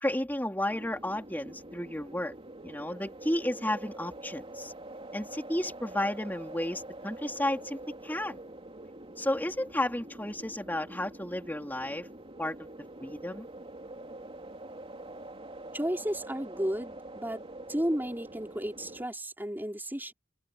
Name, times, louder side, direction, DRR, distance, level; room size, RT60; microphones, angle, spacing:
voice 1, 0.0-2.3 2.6-4.7 5.1-8.4 9.2-12.1 12.4-12.7 13.0-13.5, left 1 dB, 10° left, 3.5 m, -32 dB
sound 1, 0.7-19.1, right 1 dB, 30° right, 3.3 m, -45 dB
voice 2, 15.7-17.4 17.7-20.1, equal, 10° right, 4.8 m, -33 dB
open air
head